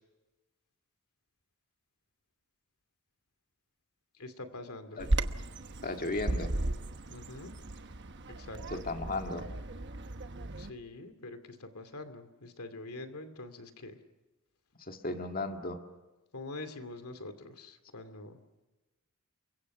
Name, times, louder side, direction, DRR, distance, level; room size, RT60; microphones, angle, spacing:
voice 1, 4.2-5.0 7.1-7.5 8.3-8.8 10.6-14.0 16.3-18.4, left 2 dB, 80° left, 9 dB, 2.5 m, -45 dB
voice 2, 5.0-5.3 5.8-6.5 8.7-9.5 14.8-15.8, left 2 dB, 40° left, 4 dB, 1.9 m, -35 dB
Bird vocalization bird call bird song, 5.0-10.7, right 2 dB, 50° right, 1.1 m, -35 dB
29.0 x 24.0 x 6.0 m, 1.1 s
head